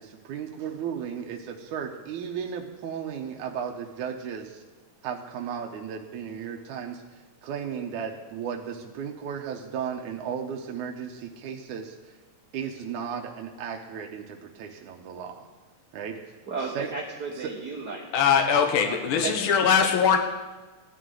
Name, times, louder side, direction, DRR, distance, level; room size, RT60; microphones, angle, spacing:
voice 1, 0.0-4.6 5.0-7.0 7.4-12.1 12.5-15.5 15.9-16.4 16.7-16.9 17.4-17.5 19.2-19.3, right 7 dB, 80° right, 2 dB, 2.2 m, -35 dB
voice 2, 16.5-18.1 18.8-19.5, right 4 dB, 55° right, -2 dB, 1.1 m, -35 dB
voice 3, 18.1-20.2, left 7 dB, 80° left, 4 dB, 1.1 m, -21 dB
16.0 x 11.0 x 3.8 m, 1.3 s
omnidirectional pair, 3.5 m